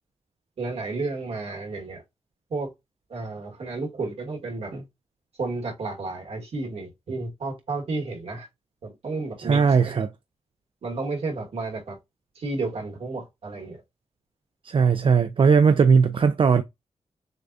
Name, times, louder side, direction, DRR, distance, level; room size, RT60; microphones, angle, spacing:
voice 1, 0.6-2.0 2.5-2.7 3.1-4.8 5.4-8.5 8.8-10.0 10.8-12.0 12.3-13.8, right 3 dB, 65° right, 1.6 m, -32 dB
voice 2, 9.4-10.1 14.6-16.6, right 5 dB, 50° right, 0.4 m, -18 dB
6.5 x 2.3 x 2.6 m
cardioid pair, 85°, 11 cm